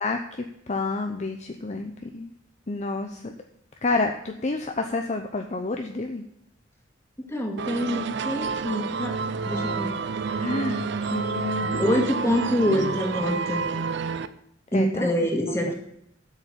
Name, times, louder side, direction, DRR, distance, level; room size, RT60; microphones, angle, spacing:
voice 1, 0.0-2.3 2.7-3.3 3.8-6.2 10.4-12.6 14.7-15.1 15.7-15.8, left 3 dB, 35° left, 5 dB, 0.7 m, -29 dB
voice 2, 7.2-9.2 9.4-9.9 11.8-13.6 14.7-15.7, equal, 15° left, 0 dB, 2.1 m, -25 dB
sound 1, 7.6-14.3, right 4 dB, 60° right, 0.6 m, -29 dB
8.1 x 6.7 x 8.4 m, 0.76 s
head